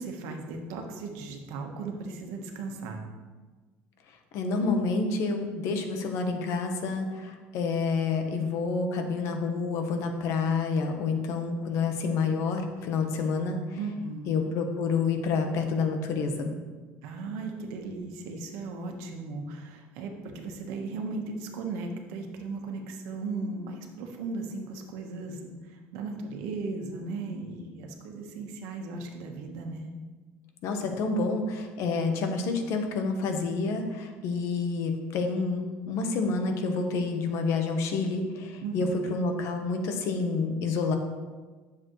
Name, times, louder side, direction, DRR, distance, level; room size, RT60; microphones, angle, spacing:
voice 1, 0.0-3.1 13.8-14.4 17.0-29.9 38.6-39.0, right 3 dB, 80° right, 3 dB, 1.3 m, -37 dB
voice 2, 4.3-13.6 14.3-16.5 30.6-41.0, left 4 dB, 65° left, 5 dB, 1.1 m, -28 dB
10.5 x 7.2 x 3.2 m, 1.4 s
cardioid pair, 135°, 5 cm